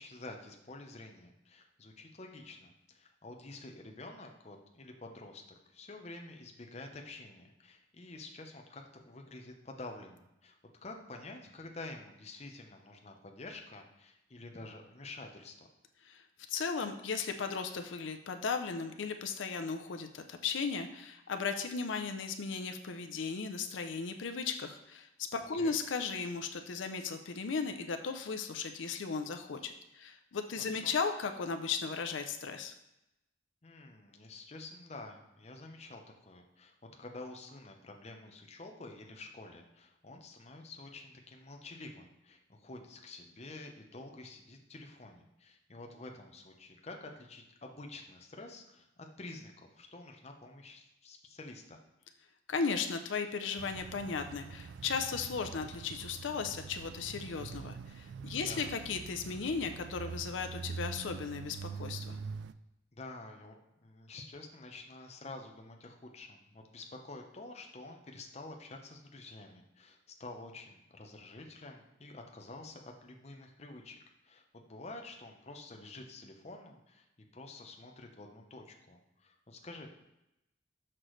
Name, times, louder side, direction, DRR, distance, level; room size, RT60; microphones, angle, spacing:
voice 1, 0.0-10.6 10.8-15.7 25.5-25.8 30.6-30.9 33.6-51.8 58.3-58.8 62.9-63.6 63.8-77.1 77.3-79.9, left 2 dB, 35° left, 3 dB, 0.7 m, -49 dB
voice 2, 16.5-32.7 52.5-62.2, left 5 dB, 90° left, 7 dB, 0.5 m, -36 dB
sound 1, 53.6-62.5, right 5 dB, 70° right, 0.3 m, -45 dB
6.4 x 5.9 x 3.1 m, 0.88 s
head